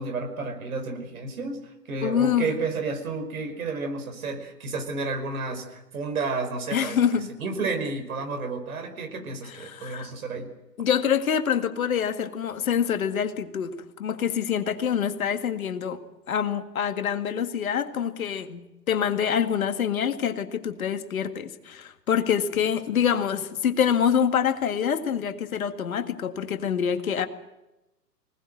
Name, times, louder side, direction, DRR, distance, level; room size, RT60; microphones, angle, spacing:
voice 1, 0.0-10.5, right 3 dB, 60° right, 6 dB, 5.3 m, -31 dB
voice 2, 2.0-2.5 6.7-7.3 9.5-10.1 10.8-16.0 16.3-27.3, left 8 dB, 55° left, 8 dB, 2.1 m, -26 dB
25.5 x 19.0 x 7.8 m, 0.98 s
figure-of-eight pair, 120°, 49 cm